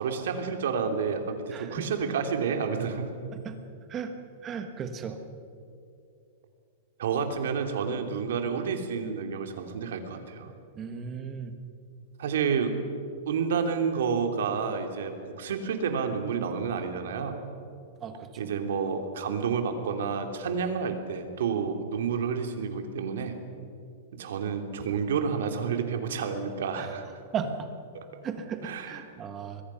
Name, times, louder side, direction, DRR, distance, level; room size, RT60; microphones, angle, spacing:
voice 1, 0.0-3.1 7.0-10.5 12.2-12.8 13.3-17.4 18.4-23.4 24.1-27.0 28.6-29.0, right 6 dB, 70° right, 5 dB, 2.8 m, -30 dB
voice 2, 1.5-1.9 3.3-3.6 3.9-4.1 4.4-5.2 10.8-11.5 18.0-18.5 26.8-26.9 27.3-27.7 28.2-29.6, right 6 dB, 15° right, 7 dB, 1.4 m, -36 dB
26.0 x 22.0 x 5.8 m, 2.5 s
supercardioid pair, 175°, 0 cm